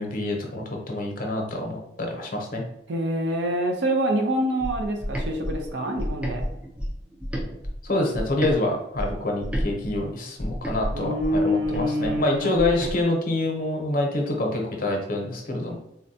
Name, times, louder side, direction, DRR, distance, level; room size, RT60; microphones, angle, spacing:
voice 1, 0.0-2.6 7.8-15.8, left 2 dB, 50° left, 1 dB, 0.7 m, -26 dB
voice 2, 2.9-6.5 10.9-12.6, equal, 75° right, 3 dB, 0.5 m, -26 dB
sound 1, 4.6-8.6 9.0-13.0, equal, 5° right, 0.5 m, -31 dB
3.8 x 2.2 x 2.7 m, 0.81 s
head